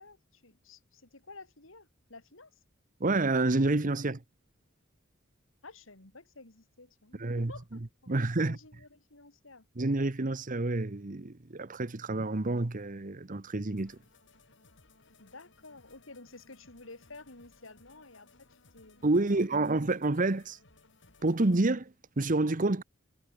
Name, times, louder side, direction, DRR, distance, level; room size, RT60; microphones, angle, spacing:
voice 1, 0.0-2.6 5.6-8.1 8.4-9.7 15.2-19.7, left 3 dB, 80° left, 4.1 m, -52 dB
voice 2, 3.0-4.2 7.2-7.5 8.1-8.6 9.8-14.0 19.0-20.6 21.2-22.8, right 2 dB, 45° right, 1.0 m, -28 dB
sound 1, 13.8-21.8, left 3 dB, 65° left, 5.2 m, -62 dB
head